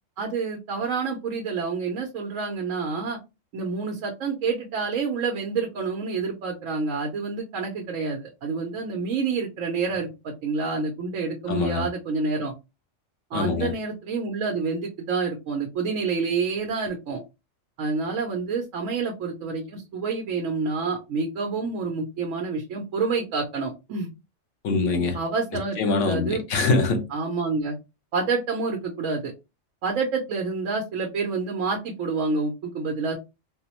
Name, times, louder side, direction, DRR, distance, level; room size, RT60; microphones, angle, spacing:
voice 1, 0.2-3.2 3.5-12.5 13.3-17.2 17.8-24.1 25.1-26.4 27.1-27.8 28.1-29.3 29.8-33.1, right 4 dB, 85° right, 1.1 m, -28 dB
voice 2, 11.5-11.9 13.3-13.7 24.6-25.2 25.8-27.0, left 3 dB, 70° left, 1.1 m, -23 dB
3.8 x 2.0 x 2.8 m
omnidirectional pair, 1.3 m